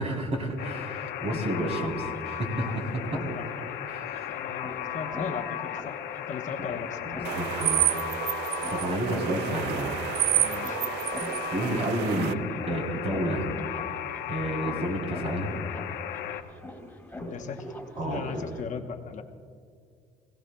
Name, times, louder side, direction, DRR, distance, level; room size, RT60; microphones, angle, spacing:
voice 1, 0.0-3.2 3.9-4.3 7.0-7.8 8.7-9.9 11.5-12.4 12.6-13.5 14.3-15.6 17.9-18.4, right 1 dB, 40° right, 0 dB, 3.4 m, -30 dB
Alarm, 0.6-16.4, left 10 dB, 85° left, 0.9 m, -36 dB
sound 1, 1.6-1.7 1.8-18.6, left 1 dB, 5° left, 3.2 m, -44 dB
voice 2, 3.0-3.5 4.3-6.0 6.3-7.0 9.8-9.9 10.3-10.8 17.2-19.2, left 6 dB, 45° left, 4 dB, 0.9 m, -37 dB
sound 2, 7.2-12.3, right 14 dB, 90° right, 0.4 m, -29 dB
24.0 x 17.0 x 2.2 m, 2.1 s
cardioid pair, 110°, 17 cm